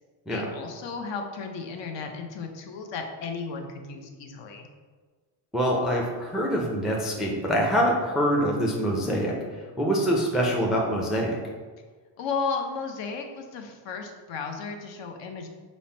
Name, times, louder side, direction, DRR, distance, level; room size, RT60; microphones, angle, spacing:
voice 1, 0.3-4.7 12.2-15.5, left 5 dB, 65° left, 4 dB, 0.7 m, -34 dB
voice 2, 5.5-9.4 9.8-11.4, equal, ahead, -2 dB, 0.3 m, -25 dB
5.5 x 2.1 x 4.3 m, 1.4 s
cardioid pair, 145°, 47 cm